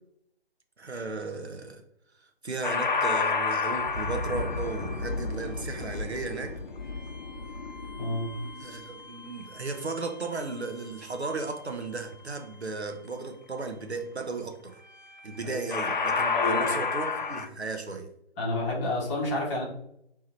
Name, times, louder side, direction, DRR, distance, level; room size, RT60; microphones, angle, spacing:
voice 1, 0.8-1.8 2.4-6.6 8.6-14.8 15.2-18.1, right 3 dB, 85° right, 1.0 m, -35 dB
sound 1, 2.6-9.8 15.0-15.3 15.7-17.5, left 4 dB, 50° left, 0.7 m, -30 dB
voice 2, 8.0-8.3 15.4-15.7 16.3-16.8 18.4-19.6, left 2 dB, 10° left, 0.9 m, -30 dB
3.7 x 3.2 x 4.5 m
figure-of-eight pair, 145°, 32 cm